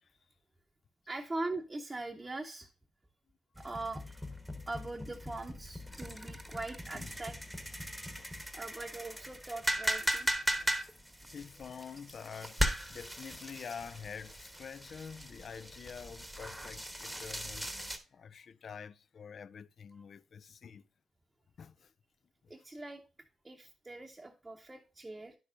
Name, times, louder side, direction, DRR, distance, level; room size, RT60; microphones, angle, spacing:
voice 1, 1.1-2.7 3.6-4.2 4.7-7.3 8.5-10.3 22.5-23.0 23.4-25.4, right 2 dB, 20° right, 0.8 m, -41 dB
sound 1, 3.6-18.0, equal, 5° right, 1.1 m, -38 dB
voice 2, 11.2-17.7 18.1-20.8 21.6-21.9 22.4-22.5, left 6 dB, 55° left, 0.4 m, -47 dB
10.5 x 6.0 x 2.5 m
hypercardioid pair, 40°, 0 cm